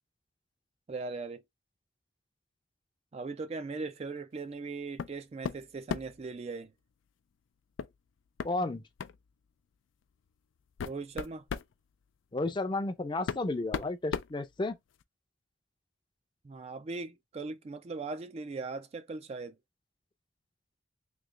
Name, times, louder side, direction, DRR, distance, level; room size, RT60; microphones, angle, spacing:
voice 1, 0.9-1.4 3.1-6.7 10.8-11.4 16.4-19.6, right 3 dB, 35° right, 0.3 m, -39 dB
sound 1, 5.0-5.2 5.4-6.2 7.8-8.0 8.4-8.5 9.0-9.2 10.0-10.1 10.6-11.7 12.8-12.9 13.3-15.0, left 6 dB, 85° left, 0.4 m, -36 dB
voice 2, 8.4-8.8 12.3-14.8, left 2 dB, 25° left, 0.5 m, -32 dB
3.2 x 2.9 x 3.6 m
head